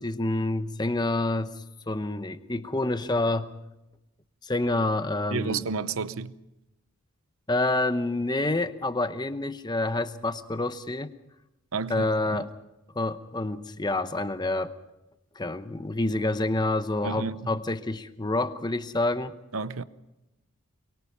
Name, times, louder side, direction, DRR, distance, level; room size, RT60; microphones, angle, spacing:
voice 1, 0.0-3.5 4.4-5.6 7.5-11.1 11.9-12.5 12.9-14.8 15.4-19.3, left 2 dB, 20° left, 0.8 m, -28 dB
voice 2, 5.3-6.3 11.7-12.0 17.0-17.4 19.5-19.8, right 5 dB, 75° right, 0.8 m, -30 dB
23.0 x 23.0 x 5.5 m
head